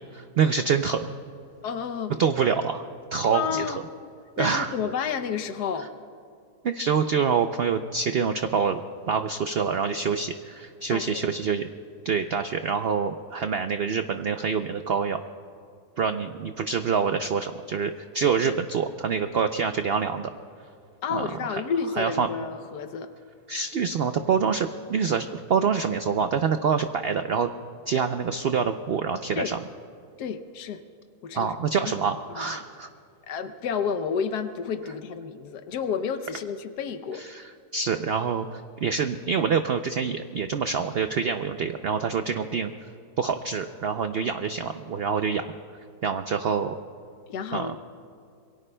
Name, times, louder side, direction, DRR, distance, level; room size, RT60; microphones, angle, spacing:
voice 1, 0.1-1.1 2.2-2.8 3.1-3.6 4.4-4.7 6.6-8.8 9.1-11.7 12.0-15.2 16.0-20.3 21.1-21.2 21.5-21.6 22.0-22.3 23.5-27.5 27.9-29.6 31.3-32.9 37.1-42.7 43.2-45.5 46.0-46.8 47.5-47.8, right 6 dB, 85° right, 8 dB, 0.5 m, -26 dB
voice 2, 1.6-2.1 3.3-3.8 4.4-5.9 10.9-11.3 21.0-23.1 29.3-29.5 30.2-30.8 31.2-31.5 32.3-32.6 33.3-37.2 47.3-47.8, left 6 dB, 85° left, 9 dB, 1.3 m, -30 dB
27.0 x 22.5 x 2.2 m, 2.5 s
omnidirectional pair, 1.7 m